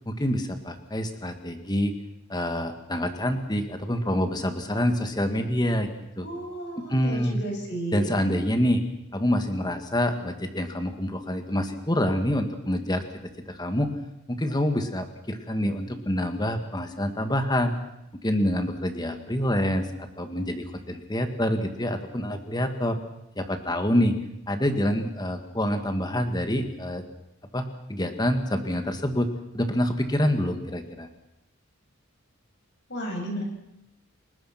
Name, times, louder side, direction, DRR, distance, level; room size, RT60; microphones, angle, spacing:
voice 1, 0.1-1.9 2.3-5.9 6.2-6.3 6.8-7.4 7.9-8.8 9.1-13.0 13.5-13.9 14.3-17.7 18.2-23.0 23.4-24.2 24.5-27.0 27.5-29.3 29.5-31.1, equal, 20° left, 7 dB, 2.1 m, -26 dB
voice 2, 6.2-8.1 32.9-33.4, right 1 dB, 55° left, 2 dB, 7.4 m, -33 dB
30.0 x 20.0 x 6.0 m, 0.83 s
head